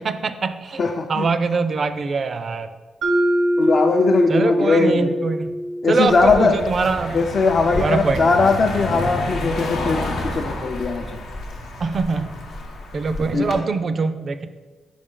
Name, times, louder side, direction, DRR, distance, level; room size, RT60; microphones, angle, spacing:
voice 1, 0.0-2.7 4.3-5.6 5.9-7.2 7.7-8.2 11.8-12.3 12.9-14.5, right 4 dB, 45° right, 11 dB, 0.4 m, -23 dB
voice 2, 0.8-1.3 3.6-5.2 5.8-6.6 7.1-11.1 13.3-13.6, left 3 dB, 45° left, 2 dB, 0.4 m, -19 dB
Mallet percussion, 3.0-7.0, equal, 85° right, 0.7 m, -24 dB
Car passing by, 6.1-13.6, left 2 dB, 85° left, 0.9 m, -30 dB
5.2 x 4.9 x 3.7 m, 1.3 s
cardioid pair, 95°, 0 cm